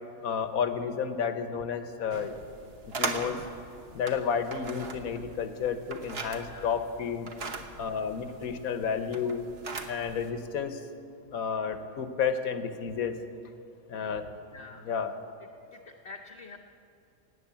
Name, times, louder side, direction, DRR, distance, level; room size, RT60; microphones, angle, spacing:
voice 1, 0.2-2.3 3.0-3.4 3.9-7.3 7.8-9.4 9.9-10.9 11.3-13.2 13.9-14.3 14.9-15.1, left 6 dB, 80° left, 9 dB, 1.4 m, -31 dB
sound 1, 2.1-10.3, right 3 dB, 45° right, 1.2 m, -40 dB
voice 2, 6.4-6.8 14.5-14.9 15.7-16.6, left 4 dB, 55° left, 2 dB, 1.0 m, -47 dB
17.0 x 9.3 x 8.3 m, 2.6 s
omnidirectional pair, 1.5 m